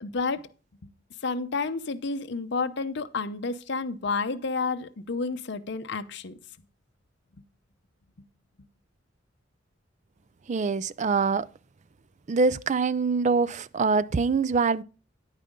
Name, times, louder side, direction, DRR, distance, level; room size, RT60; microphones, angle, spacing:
voice 1, 0.0-0.5 1.2-6.4, left 4 dB, 65° left, 0.7 m, -30 dB
voice 2, 10.5-11.5 12.3-14.8, right 4 dB, 40° right, 0.4 m, -24 dB
9.8 x 9.2 x 3.7 m
head